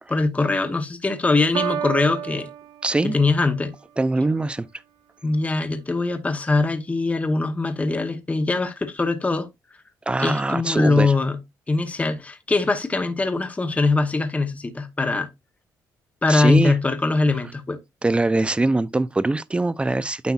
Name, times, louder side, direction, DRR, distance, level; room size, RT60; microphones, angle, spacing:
voice 1, 0.1-2.5 3.0-3.7 5.2-9.5 10.2-11.4 11.7-15.3 16.2-17.8, left 3 dB, 20° left, 0.9 m, -22 dB
Piano, 1.5-3.5, right 9 dB, 90° right, 0.7 m, -31 dB
voice 2, 2.8-3.2 4.0-4.7 10.1-11.1 16.3-16.7 18.0-20.3, right 2 dB, 15° right, 0.5 m, -22 dB
9.4 x 5.6 x 2.4 m
cardioid pair, 95°, 7 cm